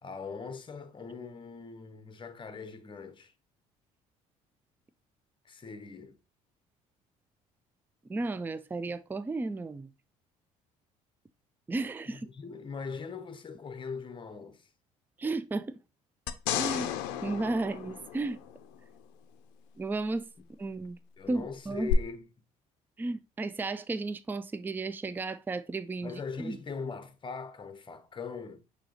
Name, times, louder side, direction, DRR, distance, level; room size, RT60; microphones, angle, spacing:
voice 1, 0.0-3.3 5.4-6.2 12.1-14.7 21.2-22.3 26.0-28.6, left 5 dB, 25° left, 0.8 m, -41 dB
voice 2, 8.1-9.9 11.7-12.3 15.2-15.8 16.6-16.9 17.2-18.4 19.8-20.3 20.6-21.0 21.3-21.9 23.0-26.6, right 3 dB, 10° right, 0.4 m, -33 dB
sound 1, 16.3-18.8 21.9-22.0, left 13 dB, 75° left, 0.5 m, -33 dB
6.0 x 2.9 x 2.9 m
hypercardioid pair, 60°, 18 cm